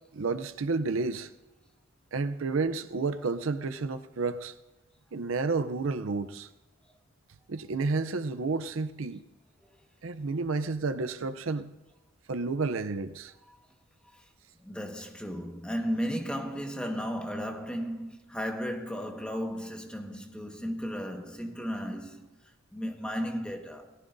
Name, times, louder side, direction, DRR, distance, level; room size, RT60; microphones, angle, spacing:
voice 1, 0.1-1.3 2.1-4.5 5.1-6.5 7.5-9.2 10.0-11.7 12.3-13.3, right 3 dB, 75° right, 0.6 m, -31 dB
voice 2, 14.6-23.9, equal, 5° left, 1.4 m, -35 dB
29.0 x 18.0 x 2.6 m
head